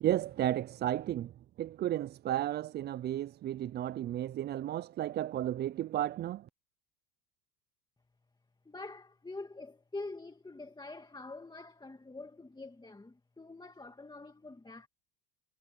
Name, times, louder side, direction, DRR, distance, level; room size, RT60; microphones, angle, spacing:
voice 1, 0.0-6.5, right 12 dB, 25° right, 0.3 m, -33 dB
voice 2, 8.7-14.9, left 3 dB, 10° left, 1.9 m, -45 dB
supercardioid pair, 100°, 46 cm